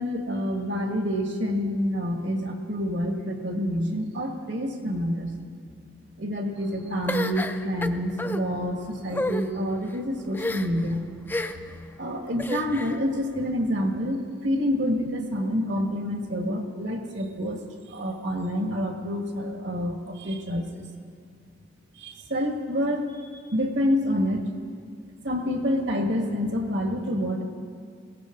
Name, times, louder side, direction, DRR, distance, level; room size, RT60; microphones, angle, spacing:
voice 1, 0.0-5.4 6.2-11.0 12.0-17.6 17.9-20.8 22.0-23.0 23.5-24.4 25.2-27.4, equal, 65° right, 3 dB, 1.8 m, -27 dB
sound 1, 7.1-8.4 9.1-9.4 10.3-10.8 11.3-11.7 12.4-13.0, left 1 dB, 10° left, 0.4 m, -30 dB
21.5 x 16.5 x 3.8 m, 2.3 s
head